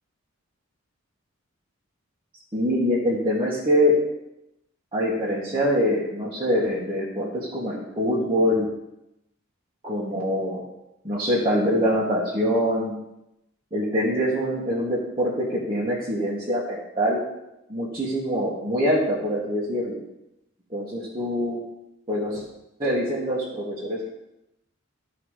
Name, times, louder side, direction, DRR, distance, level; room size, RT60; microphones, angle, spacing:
voice 1, 2.5-3.9 4.9-8.7 9.8-10.7 11.0-12.9 13.7-17.2 17.7-20.0 20.7-21.6 22.1-22.4 22.8-24.1, equal, 25° right, -8 dB, 1.9 m, -24 dB
13.5 x 4.9 x 5.0 m, 0.89 s
head